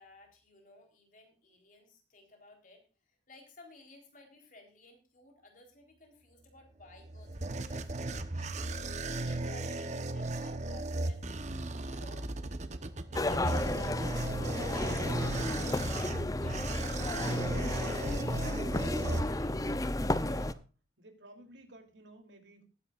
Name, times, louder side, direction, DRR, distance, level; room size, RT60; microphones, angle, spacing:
voice 1, 0.0-8.7 9.1-11.3 11.9-12.3 13.1-19.5, left 2 dB, 45° left, 3 dB, 4.0 m, -56 dB
sound 1, 6.8-19.8, right 2 dB, 40° right, 1.0 m, -36 dB
sound 2, 13.1-20.5, left 1 dB, 20° left, 0.6 m, -33 dB
sound 3, 13.4-16.7 17.3-17.6, left 1 dB, 70° left, 3.7 m, -60 dB
voice 2, 20.2-20.7 21.0-22.6, right 1 dB, 85° right, 4 dB, 3.2 m, -54 dB
19.5 x 10.0 x 2.5 m, 0.34 s
head